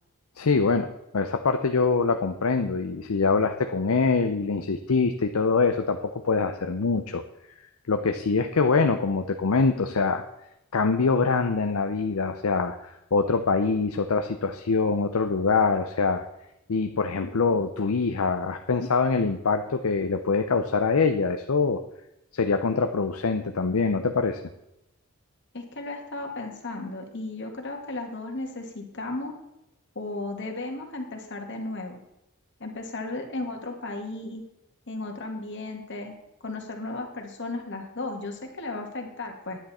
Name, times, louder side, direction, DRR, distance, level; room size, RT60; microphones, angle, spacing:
voice 1, 0.4-7.2 7.9-10.2 10.7-16.2 16.7-21.8 22.3-24.4, left 4 dB, 75° left, 7 dB, 0.6 m, -24 dB
voice 2, 25.5-29.3 30.0-32.0 32.6-34.4 34.9-36.1 36.4-39.6, left 2 dB, 55° left, 2 dB, 1.9 m, -35 dB
10.5 x 10.0 x 4.3 m, 0.87 s
head